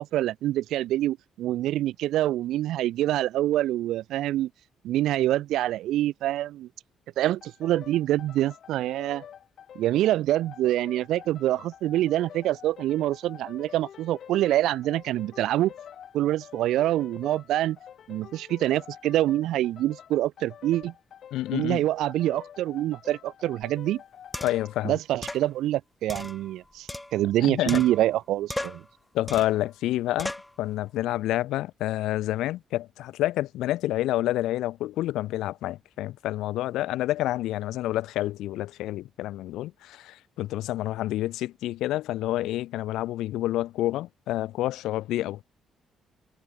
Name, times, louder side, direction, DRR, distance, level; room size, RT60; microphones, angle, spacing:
voice 1, 0.0-4.5 4.8-6.7 7.2-9.2 9.8-15.7 16.1-17.8 18.1-20.9 21.5-24.0 24.8-28.8, right 14 dB, 85° right, 0.5 m, -26 dB
sound 1, 7.4-24.8, left 9 dB, 65° left, 3.7 m, -47 dB
voice 2, 21.3-21.8 24.4-24.9 27.4-27.8 29.1-30.3 30.6-45.4, left 15 dB, 90° left, 0.4 m, -28 dB
sound 2, 23.6-23.7 24.3-24.7 25.2-25.5 26.1-27.4 27.7-28.2 28.5-28.9 29.3-29.6 30.2-30.5, left 1 dB, 10° left, 1.8 m, -36 dB
cardioid pair, 90°, 0 cm